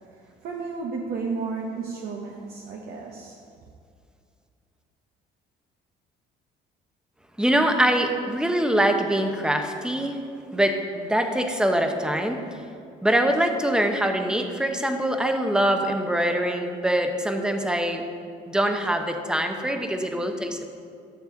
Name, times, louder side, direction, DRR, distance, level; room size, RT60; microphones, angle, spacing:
voice 1, 0.1-3.4, right 4 dB, 65° right, -1 dB, 0.9 m, -33 dB
voice 2, 7.4-10.2 10.5-12.4 13.0-18.0 18.5-20.6, right 1 dB, 5° right, 5 dB, 0.9 m, -23 dB
12.0 x 6.8 x 3.9 m, 2.3 s
cardioid pair, 110°, 17 cm